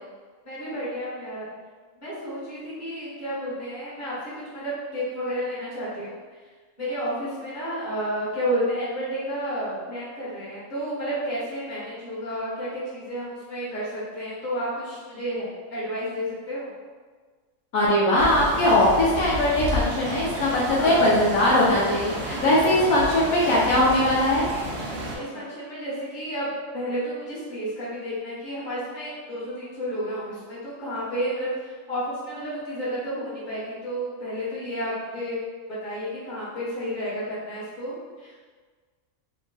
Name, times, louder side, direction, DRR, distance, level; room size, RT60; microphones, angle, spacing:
voice 1, 0.4-1.5 2.0-6.1 6.8-16.7 20.7-21.2 25.1-35.4 35.8-38.3, equal, 35° left, -10 dB, 1.5 m, -31 dB
voice 2, 17.7-24.4, left 1 dB, 80° left, -6 dB, 1.2 m, -20 dB
sound 1, 18.2-25.1, equal, 70° right, 1.1 m, -31 dB
3.6 x 2.3 x 3.8 m, 1.5 s
omnidirectional pair, 1.4 m